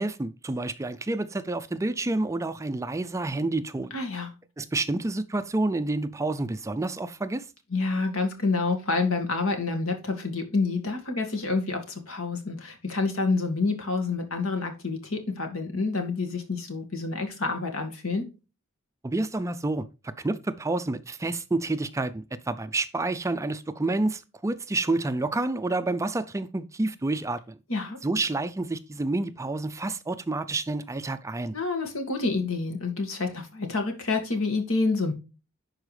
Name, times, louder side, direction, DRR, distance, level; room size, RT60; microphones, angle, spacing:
voice 1, 0.0-3.9 4.6-7.5 19.0-27.6 28.0-31.6, right 2 dB, 15° right, 0.4 m, -29 dB
voice 2, 3.9-4.3 7.7-18.3 27.7-28.0 31.5-35.1, left 3 dB, 75° left, 1.9 m, -28 dB
11.0 x 4.6 x 3.2 m
head